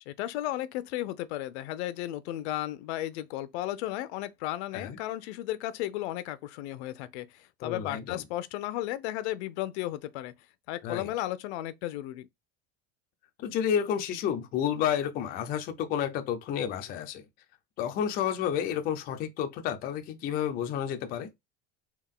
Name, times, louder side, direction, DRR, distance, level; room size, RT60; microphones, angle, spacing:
voice 1, 0.1-7.3 7.6-10.3 10.7-12.3, left 14 dB, 90° left, 0.6 m, -34 dB
voice 2, 7.6-8.2 10.8-11.1 13.4-17.3 17.8-21.3, left 9 dB, 30° left, 0.4 m, -30 dB
3.6 x 2.3 x 3.6 m
cardioid pair, 165°, 32 cm